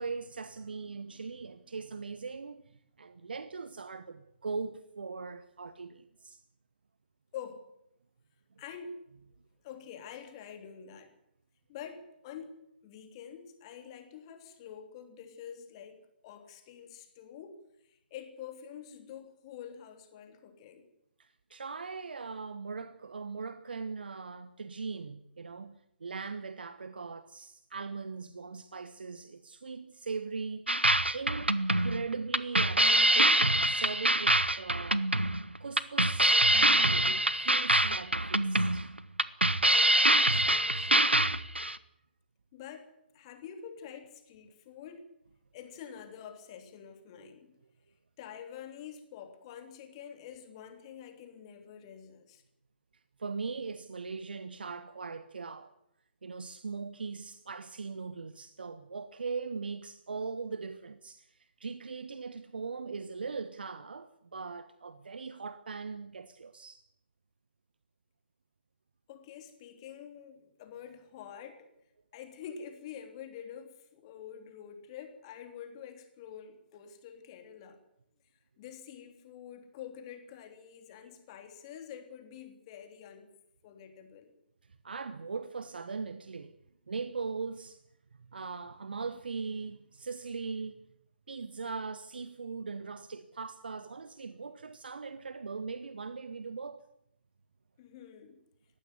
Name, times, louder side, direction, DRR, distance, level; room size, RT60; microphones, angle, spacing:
voice 1, 0.0-6.4 21.2-30.9 31.1-35.1 35.6-38.9 53.2-55.7 56.2-66.8 84.8-86.5 86.9-87.8 88.2-90.8 91.3-96.8, right 4 dB, 60° right, 1.2 m, -40 dB
voice 2, 7.3-7.6 8.6-9.0 9.6-11.1 11.7-12.5 12.8-17.6 17.8-20.9 40.0-41.4 42.5-45.0 45.5-47.5 48.2-52.4 69.1-71.7 72.1-77.8 78.6-83.3 83.6-84.3 97.8-98.4, left 8 dB, 30° left, 3.2 m, -47 dB
sound 1, 30.7-41.8, right 1 dB, 85° right, 1.2 m, -25 dB
20.5 x 15.5 x 9.5 m
figure-of-eight pair, 135°, 6 cm